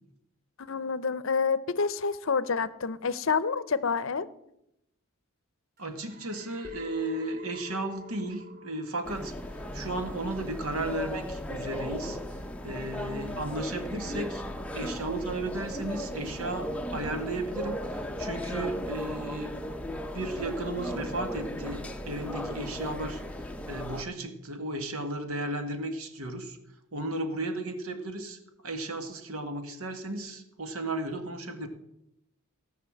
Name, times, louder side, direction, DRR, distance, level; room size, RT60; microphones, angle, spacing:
voice 1, 0.6-4.3, left 5 dB, 65° left, 0.6 m, -28 dB
sound 1, 5.8-10.3, right 4 dB, 40° right, 1.4 m, -54 dB
voice 2, 5.8-9.3 9.7-12.2 12.6-14.4 14.7-19.5 20.1-26.6 26.9-31.7, right 2 dB, 80° right, 1.8 m, -34 dB
sound 2, 6.6-10.7, left 6 dB, 20° right, 2.5 m, -46 dB
sound 3, 9.0-24.0, equal, 5° left, 0.6 m, -36 dB
17.5 x 5.9 x 7.7 m
head